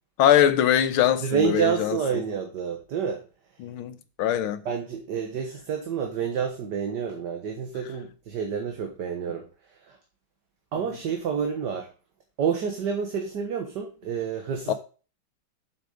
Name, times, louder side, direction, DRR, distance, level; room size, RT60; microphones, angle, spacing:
voice 1, 0.2-2.0 3.6-4.6 14.7-14.8, left 10 dB, 80° left, 1.7 m, -22 dB
voice 2, 1.2-3.2 4.6-9.5 9.8-10.0 10.7-11.9 12.4-14.7, right 7 dB, 55° right, 1.7 m, -29 dB
7.7 x 6.5 x 5.0 m
omnidirectional pair, 2.3 m